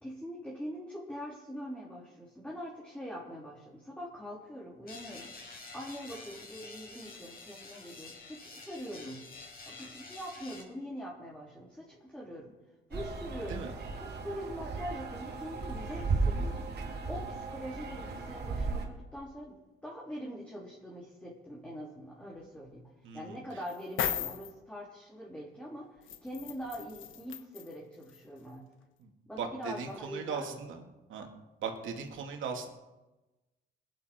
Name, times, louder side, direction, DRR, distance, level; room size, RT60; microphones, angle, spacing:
voice 1, 0.0-5.3 5.7-9.3 9.7-12.5 12.9-13.7 14.0-16.7 17.1-28.7 29.3-30.6, equal, 5° left, -4 dB, 3.6 m, -43 dB
sound 1, 4.9-10.6, left 3 dB, 50° left, 5.9 m, -48 dB
sound 2, 12.9-18.8, right 3 dB, 55° right, 2.9 m, -35 dB
voice 2, 23.0-23.4 29.0-29.1 29.4-30.8 31.1-31.3 31.6-32.7, right 6 dB, 80° right, 3 dB, 2.7 m, -38 dB
sound 3, 23.7-24.5 26.1-27.7 28.1-28.2, left 10 dB, 80° left, 1.2 m, -36 dB
21.0 x 11.0 x 4.6 m, 1.1 s
cardioid pair, 90°, 20 cm